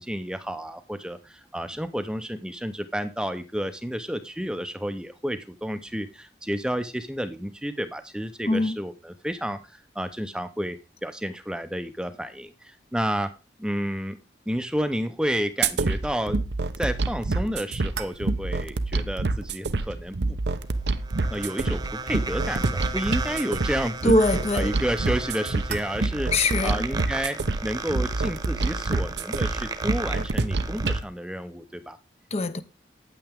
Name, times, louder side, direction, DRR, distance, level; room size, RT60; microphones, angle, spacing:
voice 1, 0.0-13.3 13.6-14.2 14.5-16.4 16.8-20.4 21.3-24.1 24.5-26.3 26.6-32.0, equal, 5° right, 0.7 m, -31 dB
voice 2, 8.5-8.8 24.0-24.8 26.3-26.9 32.3-32.6, left 2 dB, 35° left, 0.7 m, -22 dB
sound 1, 15.6-31.0, right 3 dB, 80° right, 0.8 m, -27 dB
sound 2, 20.5-31.0, right 4 dB, 25° right, 1.0 m, -35 dB
9.1 x 8.9 x 3.5 m
head